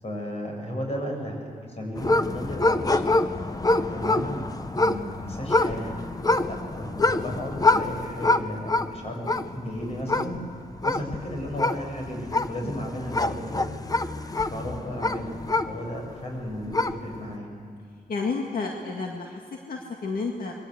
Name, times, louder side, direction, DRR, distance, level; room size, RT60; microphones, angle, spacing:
voice 1, 0.0-1.5 1.8-3.3 3.9-4.5 4.7-5.9 6.4-10.4 10.8-13.6 14.5-15.3 15.6-17.5, equal, 45° left, 0 dB, 7.6 m, -34 dB
sound 1, 2.0-16.1 16.5-17.2, left 2 dB, 25° left, 0.8 m, -26 dB
voice 2, 18.1-20.5, left 4 dB, 75° left, 0 dB, 2.0 m, -31 dB
26.5 x 22.5 x 8.1 m, 2.1 s
wide cardioid pair, 120°, 15 cm